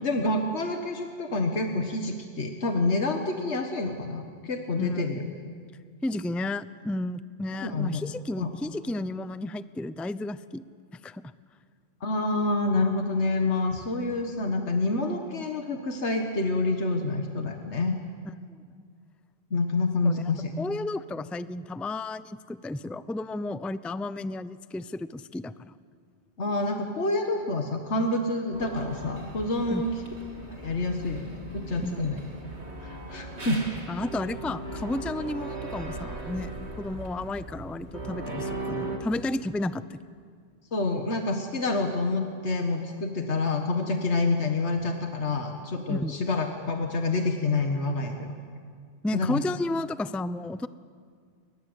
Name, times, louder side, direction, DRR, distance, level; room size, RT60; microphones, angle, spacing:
voice 1, 0.0-5.3 7.6-8.0 8.4-8.5 12.0-17.9 19.5-20.5 26.4-29.9 30.5-32.2 32.8-33.6 40.7-48.3 49.1-49.4, left 2 dB, 85° left, 3 dB, 1.9 m, -28 dB
voice 2, 6.0-10.6 10.9-11.2 18.5-18.6 20.0-20.2 20.6-25.8 29.7-29.8 31.8-32.1 33.9-40.0 45.9-46.1 49.0-50.7, left 2 dB, ahead, 14 dB, 0.4 m, -32 dB
sound 1, 28.5-39.0, right 2 dB, 80° right, 3.5 m, -38 dB
29.5 x 23.5 x 8.1 m, 2.1 s
omnidirectional pair, 1.1 m